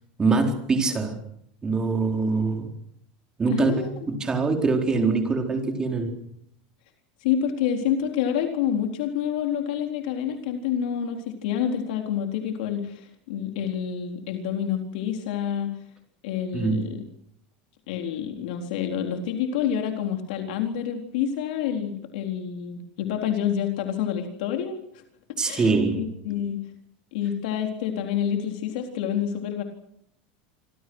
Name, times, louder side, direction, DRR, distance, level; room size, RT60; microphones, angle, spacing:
voice 1, 0.2-1.2 1.6-2.7 3.4-6.2 16.5-16.8 25.4-26.0, right 4 dB, 15° right, 4 dB, 4.3 m, -24 dB
voice 2, 3.5-3.9 7.2-15.7 16.2-17.0 17.9-25.0 25.4-26.6 27.1-29.6, left 9 dB, 75° left, 4 dB, 4.1 m, -28 dB
27.5 x 26.0 x 6.4 m, 0.71 s
supercardioid pair, 160°, 5 cm